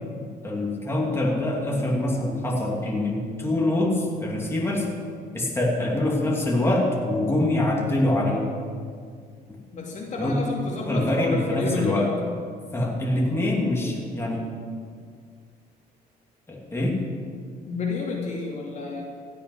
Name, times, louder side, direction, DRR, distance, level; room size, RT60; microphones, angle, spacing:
voice 1, 0.4-4.9 5.3-8.5 10.2-10.4 10.8-12.1 12.7-14.5 16.5-17.0, left 1 dB, 15° left, -3 dB, 3.0 m, -24 dB
voice 2, 9.7-12.1 17.7-19.0, left 3 dB, 45° left, -2 dB, 2.8 m, -30 dB
16.0 x 7.5 x 8.0 m, 2.1 s
cardioid pair, 110°, 17 cm